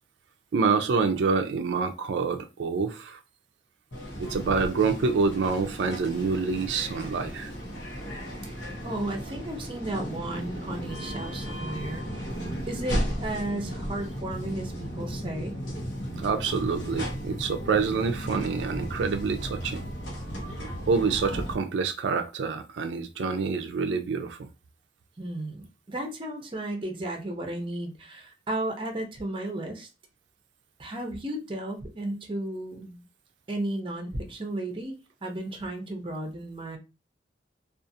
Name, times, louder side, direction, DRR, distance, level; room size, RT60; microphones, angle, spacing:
voice 1, 0.5-3.2 4.2-7.5 16.2-19.8 20.9-24.4, right 4 dB, 90° right, 0.4 m, -27 dB
sound 1, 3.9-21.5, equal, 90° left, 0.9 m, -35 dB
voice 2, 8.8-12.3 12.7-15.6 25.2-29.9 30.8-33.0 33.5-35.0 35.2-36.8, right 1 dB, 30° right, 0.6 m, -34 dB
2.4 x 2.4 x 2.6 m
head